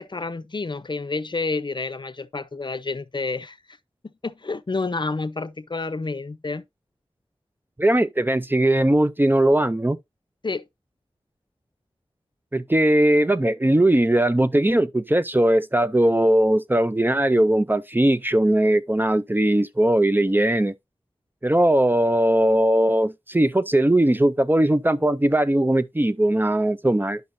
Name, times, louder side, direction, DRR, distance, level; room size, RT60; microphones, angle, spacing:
voice 1, 0.0-3.6 4.0-6.6 10.4-10.6, left 3 dB, 50° left, 0.6 m, -29 dB
voice 2, 7.8-10.0 12.5-20.7 21.4-27.2, right 1 dB, 20° right, 0.5 m, -19 dB
10.5 x 5.4 x 2.6 m
wide cardioid pair, 45°, 10 cm